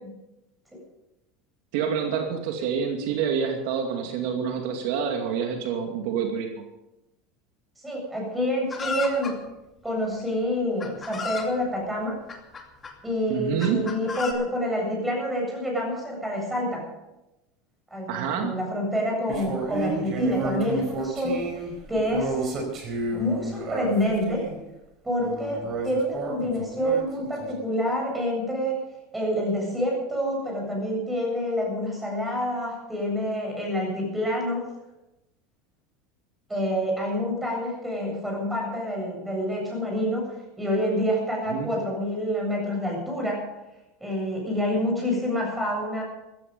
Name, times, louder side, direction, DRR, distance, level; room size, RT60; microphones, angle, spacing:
voice 1, 1.7-6.6 13.3-13.8 18.1-18.6 41.5-41.7, right 7 dB, 70° right, 3 dB, 2.3 m, -27 dB
voice 2, 7.8-9.4 9.8-12.2 13.0-16.8 17.9-22.6 23.1-24.5 25.0-28.8 29.1-34.6 36.5-43.5 44.0-46.0, equal, 10° right, -2 dB, 7.9 m, -27 dB
Chicken rooster, 8.7-9.4 10.3-10.4 10.8-11.5 12.3-12.9 13.6-14.3, left 4 dB, 20° left, 2.4 m, -33 dB
sound 1, 19.3-24.6 25.2-27.5, right 3 dB, 35° right, 4.6 m, -31 dB
15.5 x 14.5 x 5.4 m, 0.97 s
supercardioid pair, 135°, 0 cm